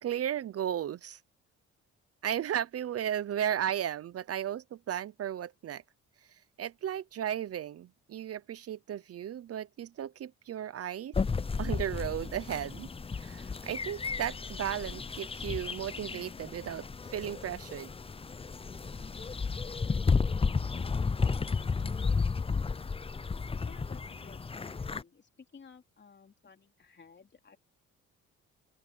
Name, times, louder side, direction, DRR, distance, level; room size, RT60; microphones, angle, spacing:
voice 1, 0.0-1.2 2.2-5.8 6.6-11.2 11.6-12.9 13.2-16.9 17.1-17.9, right 10 dB, 50° right, 0.7 m, -35 dB
sound 1, 11.1-25.0, left 4 dB, 20° left, 0.6 m, -33 dB
voice 2, 21.5-21.9 23.6-27.6, left 5 dB, 35° left, 3.4 m, -56 dB
open air
cardioid pair, 90°, 30 cm